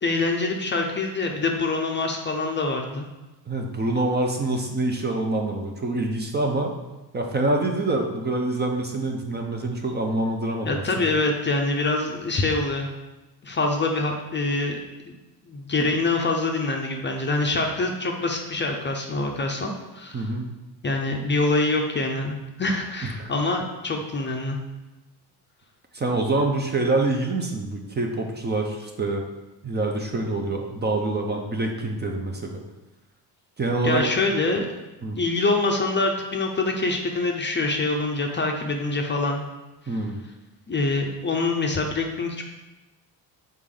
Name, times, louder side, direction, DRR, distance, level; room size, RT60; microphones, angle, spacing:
voice 1, 0.0-3.1 10.6-12.9 13.4-14.8 15.4-20.3 20.8-24.6 33.8-34.7 35.2-39.4 39.9-40.0 40.7-42.4, left 3 dB, 25° left, 2 dB, 0.6 m, -25 dB
voice 2, 3.5-6.7 7.1-11.1 20.1-20.5 23.0-23.3 25.9-29.2 29.6-32.6 33.6-34.1 35.0-35.2 39.9-40.2, right 2 dB, 25° right, 2 dB, 0.6 m, -26 dB
6.5 x 4.2 x 3.8 m, 1.1 s
cardioid pair, 130°, 43 cm